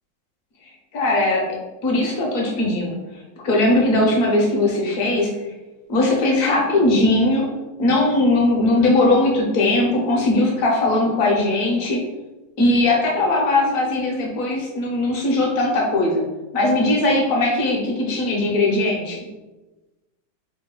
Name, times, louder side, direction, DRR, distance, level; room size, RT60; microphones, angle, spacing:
voice 1, 0.9-1.4 1.8-3.0 3.4-5.3 5.9-7.5 7.8-12.0 12.6-16.2 16.5-19.2, left 2 dB, 55° left, -1 dB, 1.0 m, -19 dB
4.0 x 2.6 x 3.7 m, 1.1 s
omnidirectional pair, 2.0 m